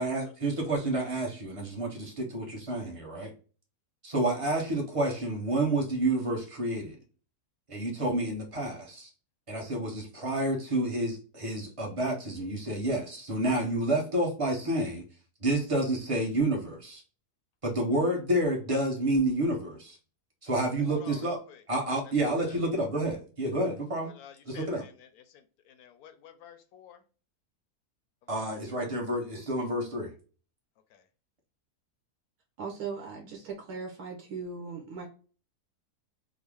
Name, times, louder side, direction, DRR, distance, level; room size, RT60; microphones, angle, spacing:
voice 1, 0.0-3.3 4.0-7.0 7.7-9.1 9.5-15.0 15.4-17.0 17.6-20.0 20.4-21.4 21.7-24.1 24.5-24.8 28.3-30.1, right 1 dB, 25° right, 0 dB, 0.8 m, -29 dB
voice 2, 20.8-21.6 22.5-22.6 24.0-27.0 28.3-28.4 30.9-31.0, left 9 dB, 75° left, 9 dB, 1.0 m, -51 dB
voice 3, 32.6-35.1, right 5 dB, 75° right, 1 dB, 1.3 m, -38 dB
3.8 x 2.0 x 3.3 m, 0.37 s
omnidirectional pair, 1.7 m